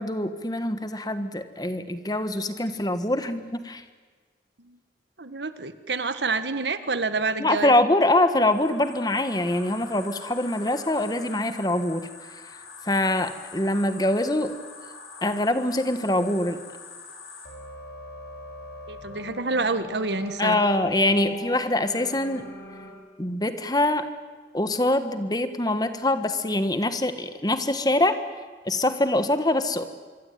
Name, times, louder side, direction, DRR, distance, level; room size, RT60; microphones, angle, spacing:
voice 1, 0.0-3.8 7.4-12.1 12.8-14.6 15.2-16.6 20.4-22.4 23.2-24.1 24.5-28.2 28.6-29.8, left 1 dB, 20° left, 10 dB, 1.5 m, -24 dB
voice 2, 5.2-7.7 18.9-20.6, right 3 dB, 80° right, 11 dB, 1.6 m, -28 dB
sound 1, 8.5-22.9, left 3 dB, 65° left, 7.4 m, -42 dB
25.5 x 24.0 x 9.4 m, 1.5 s
head